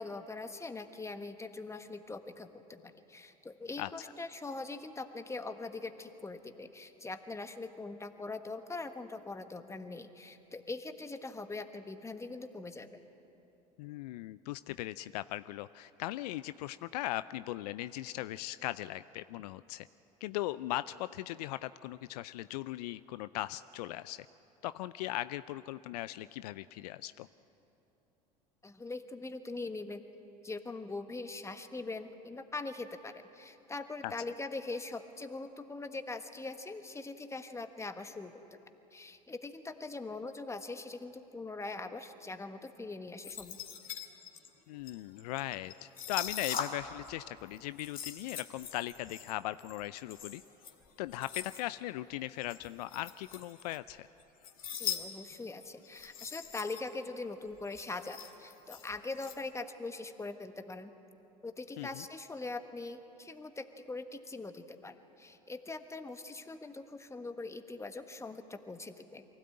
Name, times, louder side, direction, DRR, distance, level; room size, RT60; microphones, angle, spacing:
voice 1, 0.0-13.0 28.6-30.0 30.4-38.3 38.9-43.6 54.7-60.9 61.4-69.3, left 3 dB, 15° left, 8 dB, 1.4 m, -42 dB
voice 2, 13.8-19.9 20.2-24.3 24.6-27.3 34.0-34.1 44.7-50.4 51.0-54.1 61.8-62.0, left 16 dB, 70° left, 15 dB, 0.5 m, -39 dB
sound 1, 43.2-47.1 47.4-51.6 52.4-53.9 54.2-55.0 55.3-55.4 55.8-56.9 57.2-57.3 57.5-59.4, left 8 dB, 40° left, 2.2 m, -42 dB
23.5 x 16.5 x 8.7 m, 3.0 s
hypercardioid pair, 75°, 21 cm